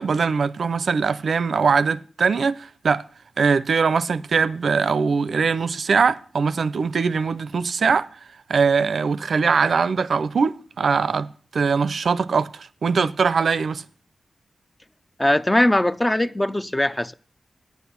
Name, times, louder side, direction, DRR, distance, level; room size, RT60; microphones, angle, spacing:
voice 1, 0.0-3.0 3.4-8.1 8.5-11.3 11.5-13.8, right 5 dB, 70° right, 0.5 m, -21 dB
voice 2, 15.2-17.1, left 1 dB, 15° left, 0.4 m, -20 dB
10.0 x 8.2 x 5.8 m
wide cardioid pair, 95°, 0 cm